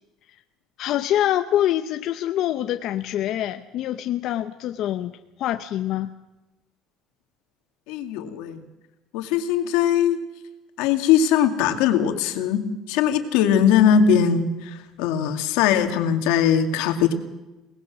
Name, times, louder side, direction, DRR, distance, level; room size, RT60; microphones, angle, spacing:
voice 1, 0.8-5.1 5.4-6.1, left 12 dB, 50° left, 9 dB, 0.7 m, -25 dB
voice 2, 7.9-8.6 9.1-10.2 10.8-17.1, left 8 dB, 85° left, 7 dB, 2.2 m, -20 dB
23.0 x 19.0 x 6.1 m, 1.0 s
cardioid pair, 155°, 0 cm